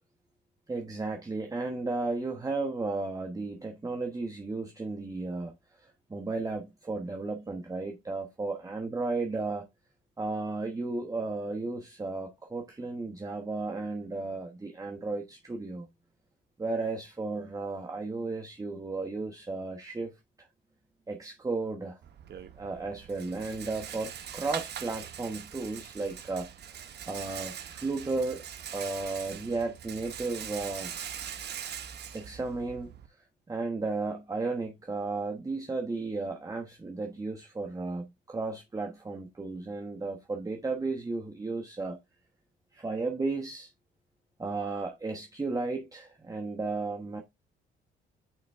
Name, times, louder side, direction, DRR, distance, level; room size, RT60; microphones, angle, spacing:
voice 1, 0.7-9.7 10.2-15.9 16.6-20.5 21.1-22.0 22.6-28.4 28.7-30.9 32.1-33.2 33.5-42.0 42.7-43.7 44.4-47.2, right 3 dB, 15° right, 1.1 m, -34 dB
Rattle, 22.0-33.1, right 9 dB, 55° right, 1.0 m, -42 dB
8.9 x 3.8 x 3.5 m
cardioid pair, 90°, 20 cm